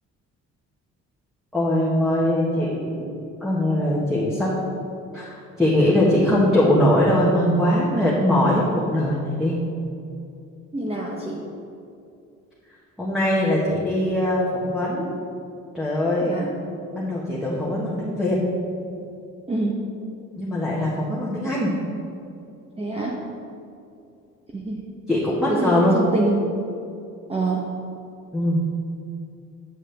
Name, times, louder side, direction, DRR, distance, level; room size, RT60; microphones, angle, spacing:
voice 1, 1.5-3.1 3.4-4.5 5.1-9.6 13.0-15.1 15.7-16.3 16.9-18.4 20.4-21.7 25.1-26.0 28.3-28.6, left 1 dB, ahead, -8 dB, 1.5 m, -21 dB
voice 2, 10.7-11.4 16.2-16.5 19.5-19.8 22.8-23.2 24.5-24.8 25.5-26.4 27.3-27.7, right 2 dB, 20° right, -3 dB, 0.9 m, -25 dB
8.7 x 7.3 x 3.4 m, 2.6 s
cardioid pair, 90°, 30 cm